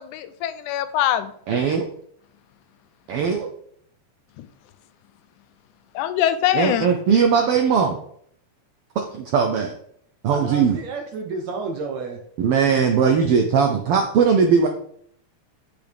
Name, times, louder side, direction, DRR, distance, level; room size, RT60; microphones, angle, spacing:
voice 1, 0.0-1.3 4.4-4.5 6.0-6.9, left 11 dB, 85° left, 2.1 m, -23 dB
voice 2, 1.5-1.9 3.1-3.5 6.5-8.0 9.1-9.7 10.2-10.8 12.4-14.7, right 6 dB, 85° right, 1.2 m, -19 dB
voice 3, 10.4-12.2, right 3 dB, 70° right, 2.0 m, -31 dB
8.7 x 6.1 x 3.4 m
omnidirectional pair, 3.4 m